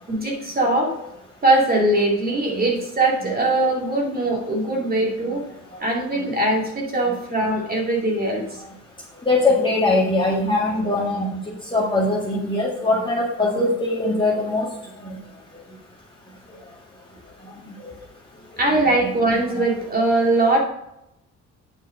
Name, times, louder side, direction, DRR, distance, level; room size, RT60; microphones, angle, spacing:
voice 1, 0.1-1.0 1.4-5.4 5.8-8.4 18.6-20.6, right 2 dB, 30° right, -2 dB, 2.5 m, -21 dB
voice 2, 9.3-11.3 11.7-14.7 19.0-19.1 19.5-19.6, left 2 dB, 15° left, -5 dB, 2.0 m, -21 dB
9.2 x 5.4 x 5.0 m, 0.83 s
cardioid pair, 90°, 30 cm